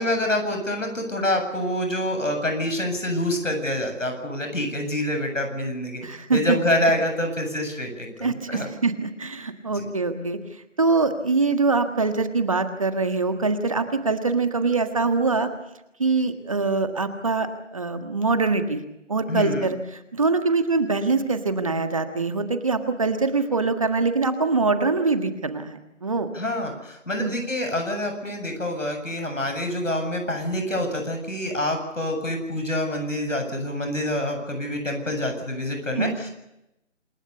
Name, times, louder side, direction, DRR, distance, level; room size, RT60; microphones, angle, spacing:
voice 1, 0.0-6.0 6.3-8.7 9.7-9.9 19.3-19.7 26.3-36.3, left 1 dB, 85° left, 5 dB, 7.8 m, -26 dB
voice 2, 6.0-6.4 8.2-10.4 10.8-15.5 16.0-18.8 19.1-26.3 27.2-27.3 36.0-36.1, right 3 dB, 25° right, 8 dB, 1.6 m, -24 dB
27.5 x 21.5 x 6.9 m, 0.88 s
figure-of-eight pair, 170°, 37 cm